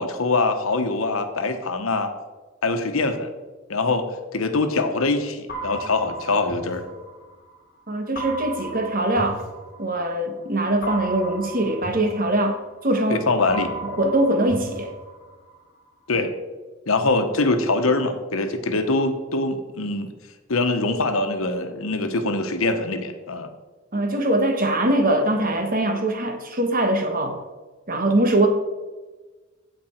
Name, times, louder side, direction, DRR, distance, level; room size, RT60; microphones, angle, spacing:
voice 1, 0.0-2.1 2.6-3.3 3.7-4.1 4.3-6.8 13.1-13.7 16.1-16.3 16.9-20.1 20.5-23.5, left 3 dB, 80° left, 7 dB, 1.1 m, -23 dB
sound 1, 5.5-7.6 8.2-10.2 10.8-13.1 13.5-15.6, right 2 dB, 45° left, 1.7 m, -36 dB
voice 2, 7.9-9.4 9.8-13.2 13.8-14.9 23.9-27.4 27.9-28.5, right 1 dB, 45° right, 5 dB, 1.3 m, -22 dB
15.5 x 5.2 x 4.5 m, 1.3 s
head